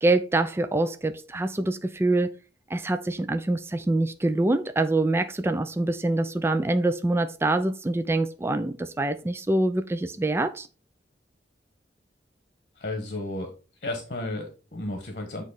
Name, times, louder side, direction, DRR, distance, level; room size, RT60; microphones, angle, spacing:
voice 1, 0.0-2.3 2.7-10.7, right 2 dB, 15° right, 0.4 m, -25 dB
voice 2, 12.8-13.5 13.8-15.4, left 2 dB, 50° left, 1.2 m, -33 dB
8.5 x 3.0 x 4.0 m
head